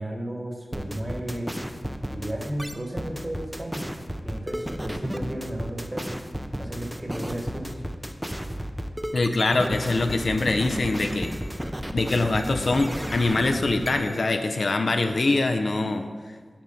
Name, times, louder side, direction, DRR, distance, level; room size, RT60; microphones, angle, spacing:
voice 1, 0.0-1.5 2.1-3.9 4.2-6.2 6.6-7.8, right 1 dB, 25° right, 1 dB, 1.1 m, -33 dB
sound 1, 0.7-14.2, equal, 5° right, 0.4 m, -33 dB
voice 2, 9.1-11.4 11.9-16.1, left 2 dB, 65° left, 7 dB, 0.4 m, -24 dB
8.5 x 3.1 x 5.4 m, 1.5 s
wide cardioid pair, 85°, 0 cm